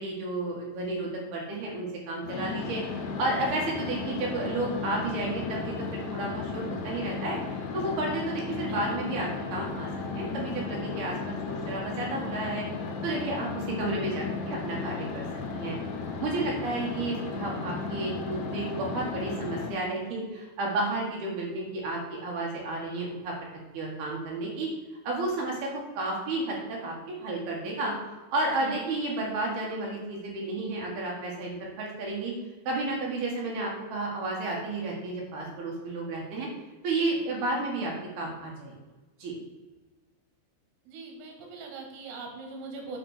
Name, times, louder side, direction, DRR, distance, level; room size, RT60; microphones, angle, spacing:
voice 1, 0.0-2.8 3.2-12.6 13.0-15.2 15.5-15.8 16.2-23.3 23.7-24.7 25.0-25.7 26.0-27.9 28.3-32.3 32.7-36.5 36.8-38.7 39.2-39.3, right 2 dB, 65° right, -2 dB, 3.0 m, -32 dB
sound 1, 2.2-19.7, left 5 dB, 75° left, 2.9 m, -35 dB
voice 2, 40.9-43.0, right 3 dB, 85° right, 1 dB, 4.2 m, -41 dB
9.2 x 4.1 x 6.4 m, 1.2 s
omnidirectional pair, 5.6 m